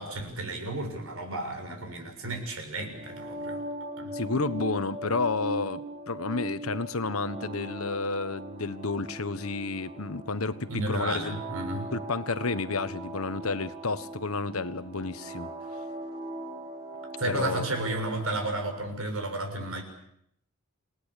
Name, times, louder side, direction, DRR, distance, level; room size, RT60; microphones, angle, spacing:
voice 1, 0.0-3.6 4.0-4.1 10.7-11.9 17.2-19.8, right 2 dB, 80° right, 5 dB, 6.8 m, -33 dB
sound 1, 2.9-18.8, right 1 dB, 35° right, 3.6 m, -40 dB
voice 2, 4.1-11.4 11.9-15.5 17.3-17.7, left 3 dB, 90° left, 13 dB, 1.4 m, -31 dB
29.0 x 19.0 x 8.4 m, 0.72 s
head